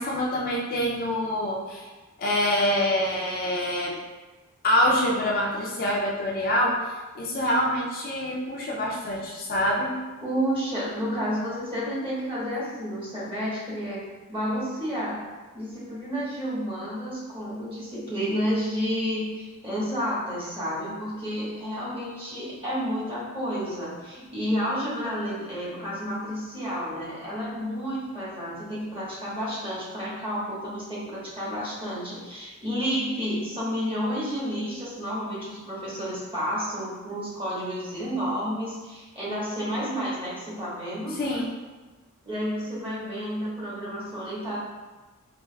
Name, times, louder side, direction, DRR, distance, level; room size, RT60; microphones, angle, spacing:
voice 1, 0.0-1.8 2.2-4.0 4.6-6.8 7.2-10.0 41.1-41.5, left 1 dB, 40° left, -3 dB, 0.4 m, -25 dB
voice 2, 10.2-15.2 15.5-41.2 42.2-44.6, equal, 25° right, -8 dB, 1.2 m, -30 dB
4.5 x 2.4 x 2.2 m, 1.2 s
head